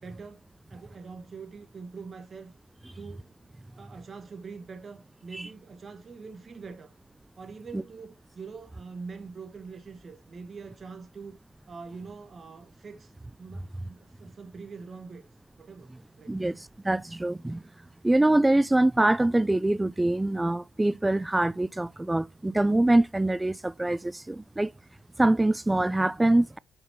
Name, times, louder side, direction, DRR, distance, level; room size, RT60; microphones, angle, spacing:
voice 1, 0.0-2.5 3.0-3.5 3.8-6.9 7.4-11.4 11.7-13.1 13.4-15.2 15.6-16.4, right 4 dB, 40° right, 1.0 m, -44 dB
voice 2, 16.8-17.6 18.0-24.7 25.2-26.6, right 1 dB, 10° right, 0.3 m, -24 dB
5.5 x 4.0 x 4.4 m
cardioid pair, 90°, 0 cm